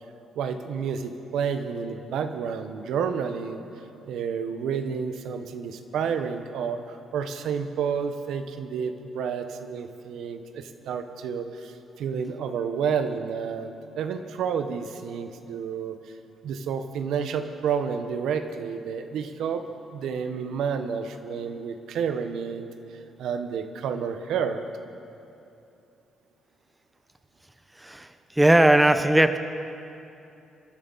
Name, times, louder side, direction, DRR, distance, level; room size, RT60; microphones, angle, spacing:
voice 1, 0.3-3.6 4.1-16.0 16.4-22.7 23.2-24.6, right 6 dB, 80° right, 7 dB, 0.9 m, -30 dB
voice 2, 27.8-29.4, right 1 dB, 10° right, 9 dB, 0.8 m, -19 dB
26.5 x 10.5 x 4.0 m, 2.8 s
cardioid pair, 90°, 0 cm